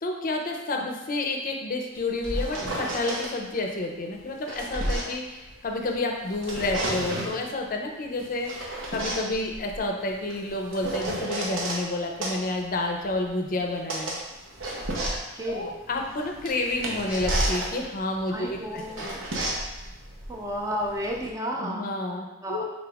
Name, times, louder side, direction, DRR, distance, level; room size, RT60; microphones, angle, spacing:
voice 1, 0.0-14.2 15.5-19.1 21.5-22.6, left 2 dB, 45° left, 2 dB, 0.5 m, -30 dB
sound 1, 1.9-3.3 4.1-5.9 6.3-7.4 8.2-11.8 12.2-21.3, right 1 dB, 85° right, 0.8 m, -32 dB
voice 2, 15.3-15.7 18.3-19.3 20.3-22.0 22.4-22.6, equal, 15° right, 0 dB, 0.4 m, -32 dB
5.1 x 3.7 x 2.3 m, 1.1 s
head